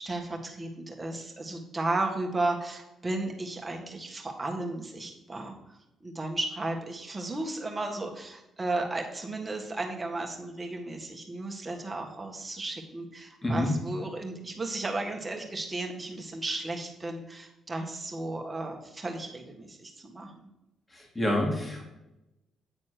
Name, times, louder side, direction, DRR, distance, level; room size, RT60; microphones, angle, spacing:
voice 1, 0.0-20.3, right 2 dB, 20° right, 1 dB, 1.7 m, -34 dB
voice 2, 21.2-21.9, left 1 dB, 20° left, 0 dB, 2.3 m, -27 dB
9.1 x 4.2 x 6.5 m, 0.94 s
cardioid pair, 90°, 0 cm